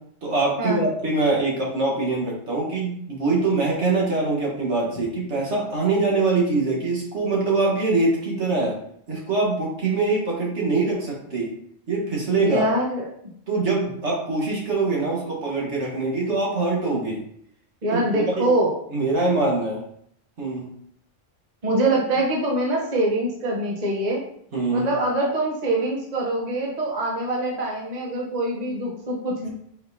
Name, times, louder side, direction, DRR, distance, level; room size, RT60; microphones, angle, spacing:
voice 1, 0.2-8.8 9.1-11.5 11.9-12.6 13.5-17.2 17.9-18.0 18.4-18.5 18.9-19.8 20.4-20.7 24.5-24.9, right 3 dB, 65° right, -2 dB, 1.5 m, -23 dB
voice 2, 12.4-13.0 17.8-18.7 21.6-24.2 24.7-29.5, right 1 dB, 40° right, -1 dB, 0.9 m, -24 dB
4.4 x 4.2 x 2.7 m, 0.67 s
omnidirectional pair, 1.3 m